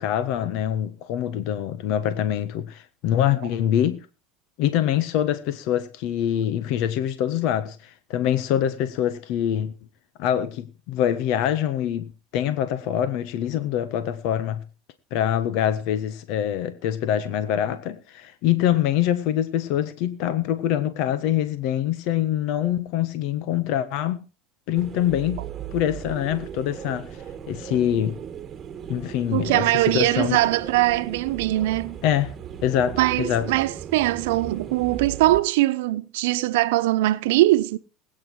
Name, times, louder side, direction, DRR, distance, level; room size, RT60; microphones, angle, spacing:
voice 1, 0.0-4.1 4.6-9.7 10.2-14.6 15.1-24.2 24.7-25.4 25.7-27.1 27.5-28.2 28.9-30.4 32.0-32.3 32.6-33.5, left 10 dB, 65° left, 1.4 m, -24 dB
sound 1, 24.7-35.4, right 8 dB, 30° right, 1.5 m, -37 dB
voice 2, 29.3-32.0 33.0-37.8, right 17 dB, 80° right, 0.9 m, -21 dB
20.0 x 9.2 x 4.6 m
supercardioid pair, 115°, 0 cm